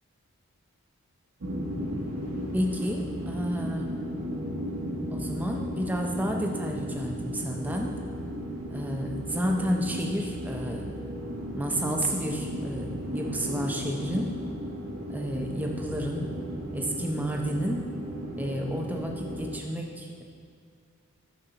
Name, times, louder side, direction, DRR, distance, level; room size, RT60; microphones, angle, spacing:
sound 1, 1.4-19.6, equal, 70° right, 1.0 m, -35 dB
voice 1, 2.5-3.9 5.1-7.9 8.7-10.9 11.5-14.3 15.1-16.3 16.7-17.8 18.4-20.2, equal, 5° right, 1 dB, 0.6 m, -31 dB
11.0 x 4.2 x 3.9 m, 2.2 s
head